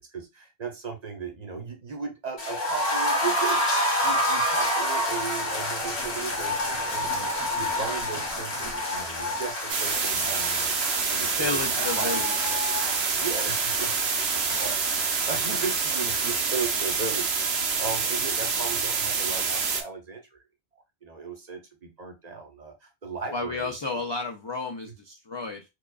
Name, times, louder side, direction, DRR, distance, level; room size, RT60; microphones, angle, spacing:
voice 1, 0.0-3.6 4.0-12.3 13.2-14.0 14.3-20.4 21.0-24.0, right 5 dB, 45° right, 4 dB, 0.8 m, -36 dB
sound 1, 2.4-18.2 18.5-18.6 18.9-19.0, left 1 dB, 75° left, 1.8 m, -29 dB
sound 2, 4.4-12.7, left 1 dB, 20° left, 1.2 m, -44 dB
sound 3, 9.7-19.8, right 5 dB, 75° right, 1.0 m, -27 dB
voice 2, 11.0-12.3 23.3-25.6, left 3 dB, 40° left, 2 dB, 0.3 m, -32 dB
4.7 x 2.3 x 2.3 m, 0.23 s
omnidirectional pair, 1.1 m